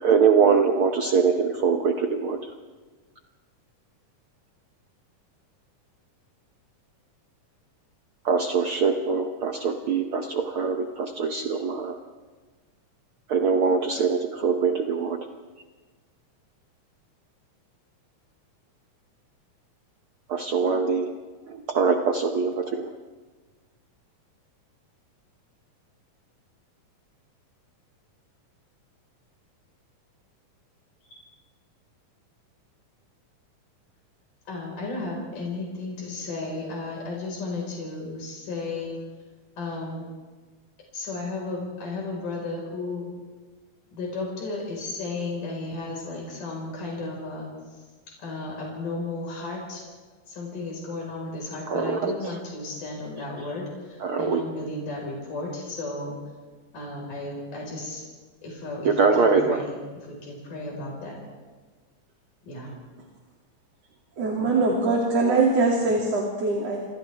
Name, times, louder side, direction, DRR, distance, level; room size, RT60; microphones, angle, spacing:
voice 1, 0.0-2.4 8.2-11.9 13.3-15.2 20.3-21.1 21.5-22.9 51.7-52.1 54.0-54.4 58.8-59.6, right 5 dB, 70° right, 4 dB, 1.2 m, -23 dB
voice 2, 34.5-39.0 39.6-40.1 40.9-43.1 43.9-47.5 47.7-47.8 48.2-49.8 50.3-56.2 56.7-58.0 58.4-59.8 60.0-61.2 62.5-62.7 64.2-64.6, left 2 dB, 80° left, -2 dB, 6.3 m, -34 dB
voice 3, 64.2-66.8, right 3 dB, 55° right, -2 dB, 3.6 m, -22 dB
29.0 x 26.0 x 3.5 m, 1.4 s
omnidirectional pair, 3.7 m